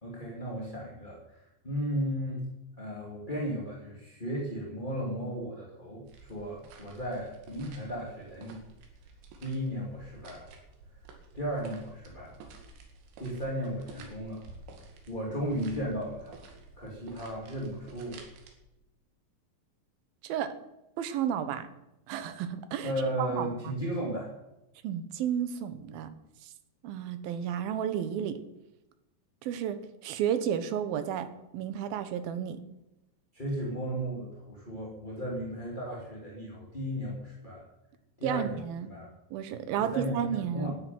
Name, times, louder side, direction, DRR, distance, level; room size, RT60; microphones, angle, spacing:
voice 1, 0.0-2.4 2.8-8.6 9.4-10.5 11.3-12.3 13.2-14.5 15.1-16.4 16.8-18.3 22.8-24.3 33.3-37.6 38.2-38.6 38.9-39.1 39.8-40.2 40.5-40.8, equal, 15° left, -4 dB, 1.8 m, -35 dB
sound 1, 6.1-18.5, right 3 dB, 85° right, 4.5 m, -51 dB
voice 2, 20.2-20.5 21.0-21.7 22.1-22.9 23.2-23.7 24.8-26.1 26.8-28.4 29.4-29.8 30.0-31.3 31.5-32.6 38.2-38.9 39.3-40.7, right 9 dB, 70° right, 10 dB, 2.7 m, -32 dB
12.5 x 9.7 x 9.4 m, 0.93 s
omnidirectional pair, 5.0 m